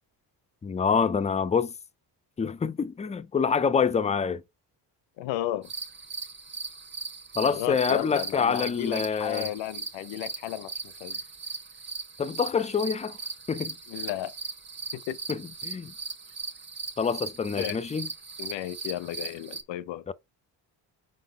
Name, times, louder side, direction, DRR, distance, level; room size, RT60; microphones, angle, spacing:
voice 1, 0.6-1.7 2.4-4.4 7.4-9.5 12.2-13.2 13.5-13.8 15.3-15.9 17.0-18.1 20.1-20.2, left 6 dB, 15° left, 0.3 m, -26 dB
voice 2, 5.2-5.7 7.4-11.2 13.9-14.3 14.9-15.2 17.6-17.8 18.4-20.0, left 13 dB, 85° left, 0.7 m, -33 dB
sound 1, 5.6-19.6, right 4 dB, 25° right, 0.9 m, -39 dB
4.9 x 4.0 x 5.2 m
cardioid pair, 105°, 43 cm